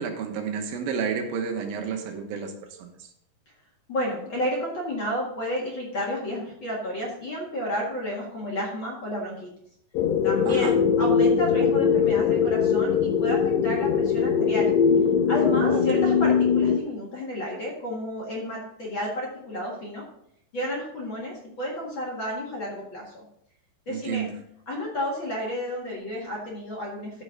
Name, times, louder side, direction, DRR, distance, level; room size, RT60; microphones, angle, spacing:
voice 1, 0.0-3.1 10.4-10.7 15.5-15.8 23.9-24.4, right 6 dB, 85° right, 4 dB, 2.9 m, -31 dB
voice 2, 3.9-9.5 10.2-14.7 15.3-20.0 20.5-23.2 23.9-24.3 24.7-27.1, equal, 40° left, -3 dB, 2.0 m, -31 dB
sound 1, 9.9-16.8, left 6 dB, 90° left, 1.6 m, -21 dB
14.5 x 5.5 x 3.8 m, 0.72 s
omnidirectional pair, 4.1 m